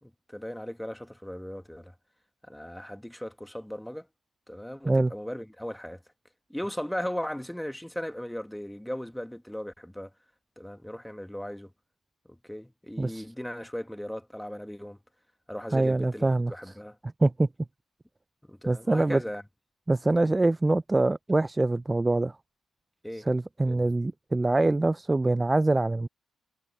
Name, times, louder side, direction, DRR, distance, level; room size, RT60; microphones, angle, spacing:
voice 1, 0.0-1.9 2.4-4.1 4.5-6.0 6.5-10.1 10.6-11.7 12.3-15.0 15.5-17.0 18.5-19.4 23.0-23.3 23.7-23.9, equal, 5° left, 1.9 m, -37 dB
voice 2, 15.7-16.5 17.2-17.5 18.7-19.2 19.9-22.4 23.3-26.1, right 2 dB, 20° right, 0.4 m, -24 dB
cardioid pair, 80°, 0 cm